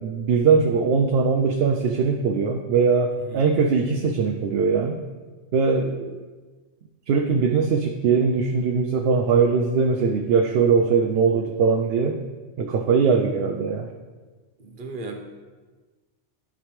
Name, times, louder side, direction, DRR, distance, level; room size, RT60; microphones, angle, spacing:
voice 1, 0.0-5.0 5.5-6.2 7.1-12.2 12.6-13.9, right 5 dB, 65° right, 4 dB, 0.7 m, -21 dB
voice 2, 14.6-15.2, right 3 dB, 50° right, 3 dB, 1.0 m, -36 dB
11.5 x 5.1 x 3.2 m, 1.3 s
omnidirectional pair, 1.2 m